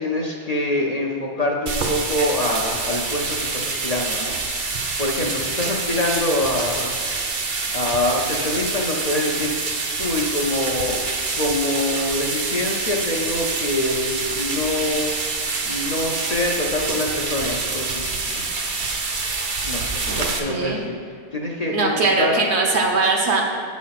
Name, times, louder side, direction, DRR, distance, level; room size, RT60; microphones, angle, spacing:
voice 1, 0.0-4.7 5.0-7.0 7.7-9.5 10.0-11.0 11.4-15.1 15.7-18.5 19.6-20.9 21.3-22.4, left 1 dB, 40° left, -1 dB, 0.7 m, -25 dB
sound 1, 1.7-20.4, right 3 dB, 50° right, 0.8 m, -26 dB
voice 2, 20.1-20.8 21.7-23.4, right 3 dB, 70° right, 0 dB, 1.3 m, -21 dB
8.4 x 4.2 x 5.8 m, 2.2 s
omnidirectional pair, 1.2 m